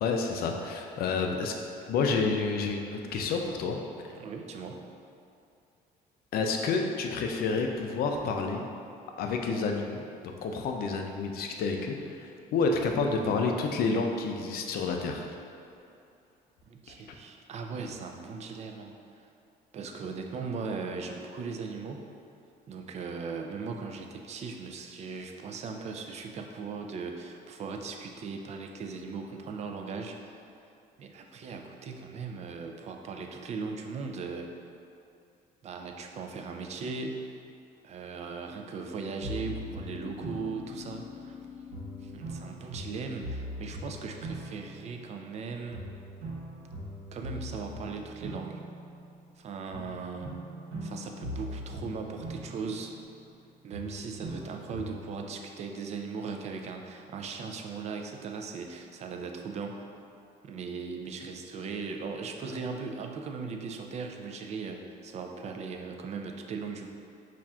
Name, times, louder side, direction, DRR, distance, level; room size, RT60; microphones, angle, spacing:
voice 1, 0.0-1.5 1.9-3.8 6.3-8.6 9.2-10.0 10.4-15.3, left 4 dB, 65° left, 3 dB, 0.4 m, -29 dB
voice 2, 4.1-4.8 16.7-19.3 19.7-22.0 22.7-30.4 31.0-34.5 35.6-37.3 37.8-41.4 42.0-45.9 47.1-48.6 49.4-50.3 50.8-52.9 53.6-59.9 60.4-66.9, right 4 dB, 40° right, 3 dB, 0.4 m, -38 dB
sound 1, 32.0-32.5 38.6-42.2, left 7 dB, 5° right, 1.3 m, -48 dB
sound 2, 39.2-41.4 41.7-45.4 45.7-49.4 49.7-53.4 53.7-55.3, equal, 85° right, 1.0 m, -41 dB
5.5 x 2.5 x 2.3 m, 2.6 s
cardioid pair, 110°, 17 cm